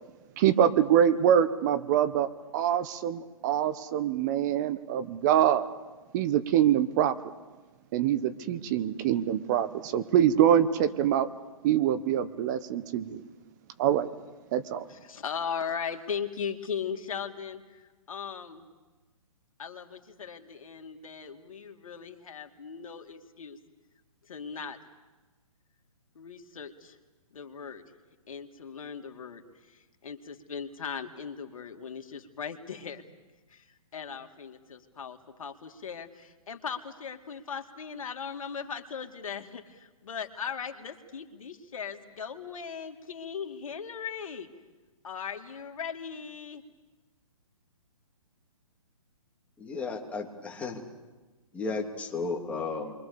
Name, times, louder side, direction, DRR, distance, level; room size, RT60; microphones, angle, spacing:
voice 1, 0.4-5.7 6.1-7.2 7.9-11.3 11.6-13.2 13.8-14.1 14.5-14.9, right 10 dB, 30° right, 12 dB, 1.1 m, -25 dB
voice 2, 14.9-18.7 19.6-23.6 24.3-24.8 26.2-27.0 27.3-27.8 28.3-33.0 33.5-33.7 33.9-44.5 45.0-46.6, left 6 dB, 70° left, 6 dB, 2.6 m, -38 dB
voice 3, 49.6-50.8 51.5-52.9, left 4 dB, 5° left, 0 dB, 3.0 m, -34 dB
30.0 x 23.5 x 7.0 m, 1.2 s
hypercardioid pair, 150°, 18 cm